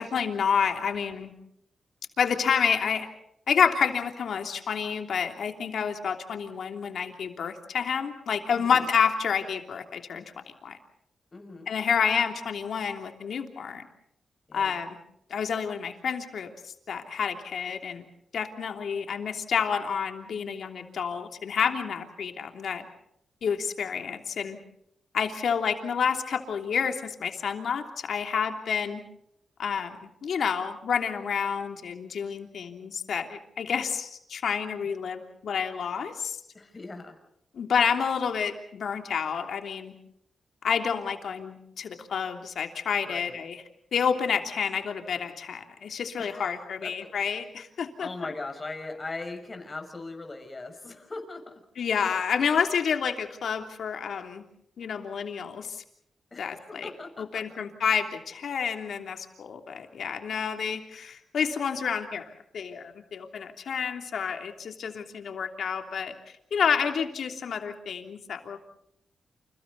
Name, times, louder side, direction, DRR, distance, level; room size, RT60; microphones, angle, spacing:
voice 1, 0.0-1.3 2.2-3.1 3.5-10.2 10.6-10.8 11.7-13.8 14.5-15.0 15.3-16.5 16.9-18.0 18.3-22.8 23.4-24.6 25.1-29.0 29.6-36.4 37.5-39.9 40.6-43.6 43.9-48.1 51.8-54.4 54.8-55.8 56.4-56.9 57.2-66.1 66.5-68.6, left 7 dB, 75° left, 5 dB, 3.0 m, -29 dB
voice 2, 8.5-8.9 11.3-11.7 14.5-14.8 36.5-37.1 43.1-43.4 46.2-47.1 48.0-51.5 56.3-57.4, left 3 dB, 30° left, 5 dB, 6.3 m, -40 dB
29.5 x 29.0 x 4.1 m, 0.75 s
cardioid pair, 80°, 0 cm